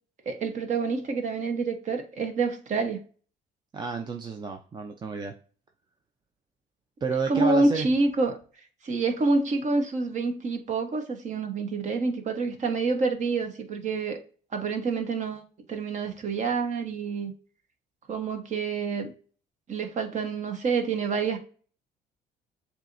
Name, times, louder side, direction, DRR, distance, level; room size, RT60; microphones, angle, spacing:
voice 1, 0.2-3.0 7.3-8.4 8.8-14.2 14.5-15.4 15.7-17.3 18.1-19.1 19.7-21.4, right 3 dB, 45° right, 5 dB, 1.1 m, -27 dB
voice 2, 3.7-5.3 7.0-7.9, right 4 dB, 25° right, 4 dB, 0.6 m, -31 dB
7.3 x 2.8 x 2.6 m, 0.40 s
cardioid pair, 110°, 17 cm